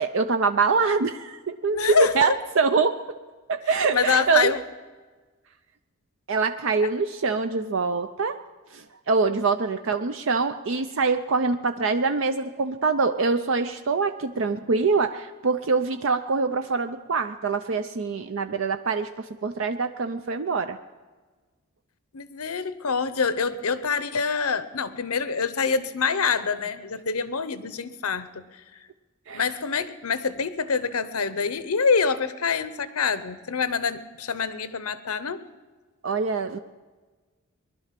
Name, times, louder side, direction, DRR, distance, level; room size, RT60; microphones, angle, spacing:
voice 1, 0.0-3.0 3.5-4.5 6.3-8.4 8.7-20.8 29.3-29.4 36.0-36.6, right 4 dB, 60° right, 8 dB, 0.5 m, -24 dB
voice 2, 1.7-2.3 3.9-4.6 22.1-28.6 29.3-35.4, left 5 dB, 85° left, 13 dB, 0.9 m, -26 dB
20.5 x 11.5 x 5.9 m, 1.3 s
head